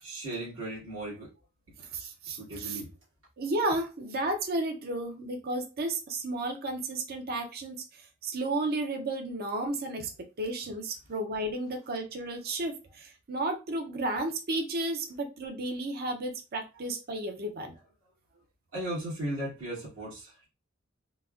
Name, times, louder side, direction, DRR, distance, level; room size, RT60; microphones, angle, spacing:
voice 1, 0.0-1.3 2.4-2.9 18.7-20.5, right 1 dB, 80° right, -7 dB, 1.9 m, -36 dB
voice 2, 1.8-2.8 3.4-10.1 10.4-17.7, right 2 dB, 50° right, 4 dB, 0.5 m, -33 dB
3.9 x 2.2 x 2.3 m, 0.29 s
head